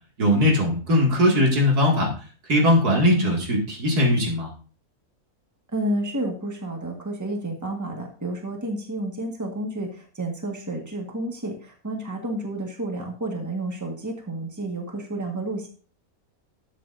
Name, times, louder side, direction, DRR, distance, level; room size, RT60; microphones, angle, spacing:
voice 1, 0.2-2.1 2.5-4.5, left 1 dB, 85° right, -1 dB, 2.8 m, -20 dB
voice 2, 5.7-15.7, right 1 dB, 10° right, 1 dB, 1.5 m, -30 dB
12.5 x 7.7 x 2.6 m, 0.40 s
omnidirectional pair, 1.6 m